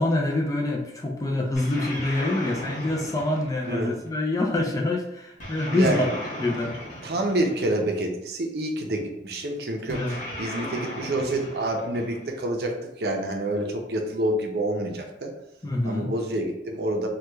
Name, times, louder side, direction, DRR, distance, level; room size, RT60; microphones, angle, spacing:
voice 1, 0.0-6.1 6.4-6.7 9.9-10.2 15.6-16.1, left 2 dB, 20° left, 1 dB, 0.3 m, -26 dB
sound 1, 1.5-4.2 5.4-8.0 9.9-12.5, equal, 45° left, 0.8 m, -36 dB
voice 2, 3.7-4.0 5.7-6.1 7.0-15.3 15.8-17.1, right 1 dB, 65° right, 2 dB, 0.5 m, -28 dB
3.1 x 2.2 x 3.3 m, 0.84 s
head